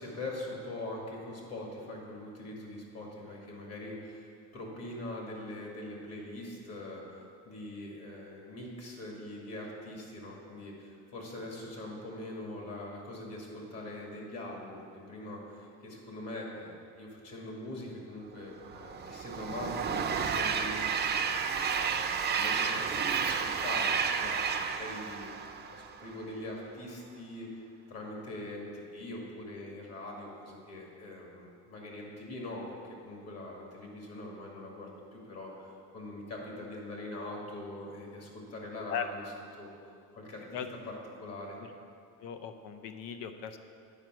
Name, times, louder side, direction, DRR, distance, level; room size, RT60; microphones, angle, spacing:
voice 1, 0.0-21.4 21.7-27.5 27.9-39.2 39.6-39.7 40.1-40.4 40.9-41.6, left 1 dB, 50° left, -1 dB, 2.2 m, -42 dB
Train, 18.6-26.1, right 6 dB, 30° right, 0.5 m, -31 dB
voice 2, 42.2-43.6, left 8 dB, 85° left, 8 dB, 0.7 m, -38 dB
9.1 x 4.9 x 6.1 m, 2.4 s
cardioid pair, 120°, 33 cm